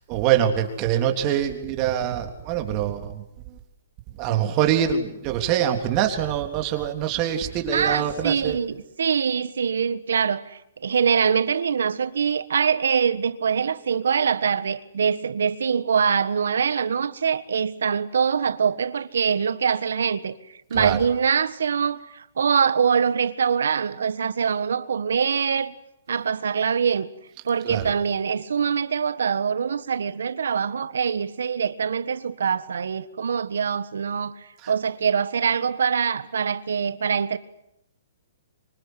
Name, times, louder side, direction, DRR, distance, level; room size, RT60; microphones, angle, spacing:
voice 1, 0.0-3.2 4.2-8.6 20.7-21.0 27.6-27.9 34.6-34.7, right 10 dB, 35° right, 3.5 m, -24 dB
voice 2, 7.7-20.4 20.7-25.7 26.1-27.1 27.4-37.4, right 6 dB, 80° right, 1.5 m, -24 dB
25.5 x 24.0 x 8.2 m
hypercardioid pair, 140°, 0 cm